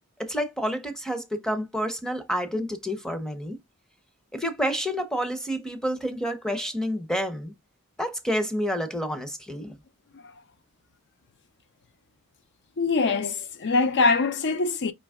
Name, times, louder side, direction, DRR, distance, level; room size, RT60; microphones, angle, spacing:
voice 1, 0.2-3.6 4.3-7.5 8.0-9.8, equal, 5° left, 0.6 m, -29 dB
voice 2, 12.8-14.9, left 4 dB, 50° left, 0.5 m, -23 dB
4.5 x 2.9 x 3.5 m
head